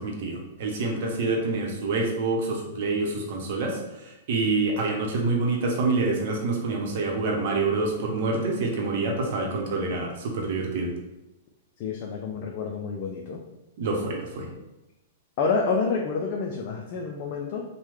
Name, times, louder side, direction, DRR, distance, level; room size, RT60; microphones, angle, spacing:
voice 1, 0.0-3.8 4.3-10.9 13.8-14.5, right 3 dB, 60° right, 1 dB, 0.8 m, -26 dB
voice 2, 11.8-13.4 15.4-17.6, left 4 dB, 50° left, 1 dB, 0.4 m, -28 dB
3.0 x 2.2 x 3.4 m, 0.97 s
hypercardioid pair, 115°, 0 cm